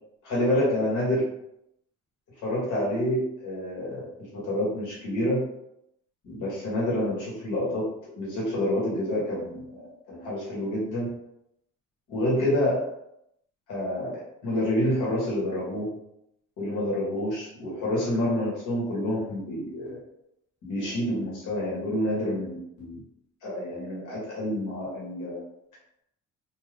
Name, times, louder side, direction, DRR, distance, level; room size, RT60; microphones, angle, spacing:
voice 1, 0.2-1.3 2.4-5.5 6.2-11.1 12.1-12.8 13.7-15.9 16.6-20.0 20.6-23.0 23.4-25.4, left 1 dB, 85° left, -6 dB, 1.4 m, -28 dB
2.6 x 2.5 x 3.3 m, 0.79 s
cardioid pair, 90°, 30 cm